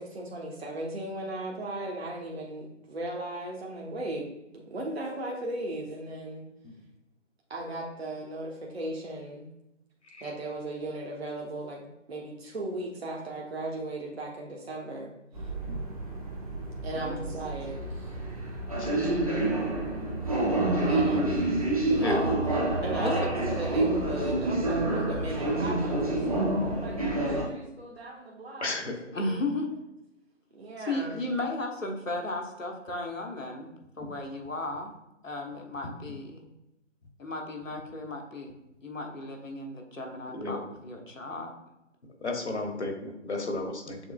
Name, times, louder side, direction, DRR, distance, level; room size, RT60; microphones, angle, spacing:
voice 1, 0.0-6.5 7.5-9.5 10.2-15.1 16.8-18.1 20.7-21.3 22.8-29.4 30.5-31.2, right 1 dB, 55° right, -1 dB, 1.0 m, -37 dB
sound 1, 15.3-27.4, right 2 dB, 30° right, 0.8 m, -28 dB
voice 2, 16.9-17.3 21.8-22.4 23.0-23.1 29.1-29.7 30.8-34.9 35.2-36.4 37.2-38.5 38.8-41.5, left 2 dB, 85° left, 1 dB, 1.1 m, -35 dB
voice 3, 28.6-29.0 40.3-40.6 42.2-44.0, left 2 dB, 60° left, 3 dB, 1.1 m, -32 dB
6.9 x 3.3 x 2.3 m, 0.89 s
figure-of-eight pair, 155°, 38 cm